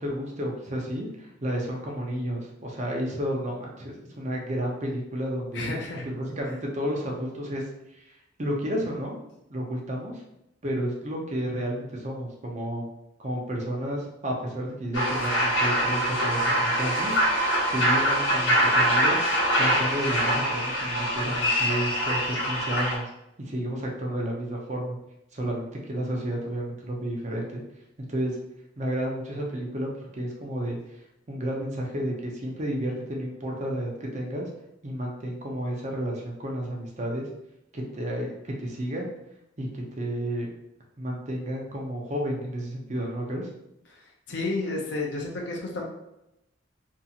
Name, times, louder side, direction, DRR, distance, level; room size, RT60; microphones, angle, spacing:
voice 1, 0.0-5.7 6.0-7.7 7.9-8.1 8.4-9.2 9.5-10.2 10.6-12.9 13.2-17.1 17.6-19.2 19.6-23.1 23.4-25.0 25.3-27.6 28.0-28.4 28.8-30.8 31.3-34.5 34.8-37.3 37.7-39.1 39.6-40.5 41.0-43.5, right 1 dB, 40° right, -1 dB, 0.6 m, -31 dB
voice 2, 5.5-6.1 43.9-44.0 44.3-45.9, left 2 dB, 65° left, -1 dB, 0.5 m, -31 dB
sound 1, 14.9-22.9, equal, 85° left, 0.9 m, -24 dB
2.7 x 2.7 x 2.4 m, 0.85 s
head